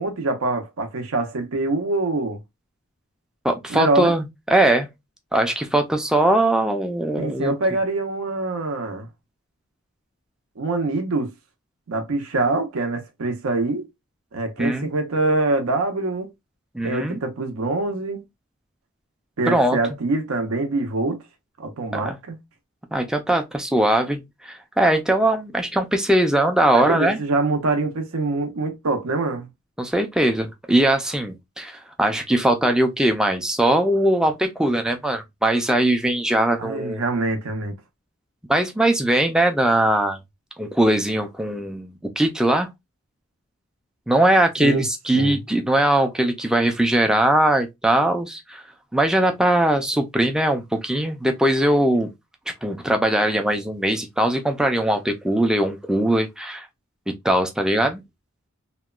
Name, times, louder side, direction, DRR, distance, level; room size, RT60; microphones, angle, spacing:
voice 1, 0.0-2.4 3.7-4.1 7.2-9.1 10.6-11.3 11.9-13.9 14.3-16.3 16.8-18.2 19.4-21.2 21.6-22.4 26.7-29.5 36.6-37.7 44.6-44.8 45.1-45.4, right 2 dB, 90° right, 0.6 m, -24 dB
voice 2, 3.4-4.9 5.3-7.5 14.6-14.9 16.7-17.2 19.5-19.8 21.9-22.2 22.9-27.2 29.8-37.0 38.5-40.2 40.6-42.7 44.1-48.6 48.9-52.1 52.5-56.7 57.1-58.0, right 1 dB, 5° right, 0.3 m, -20 dB
2.8 x 2.1 x 2.2 m
head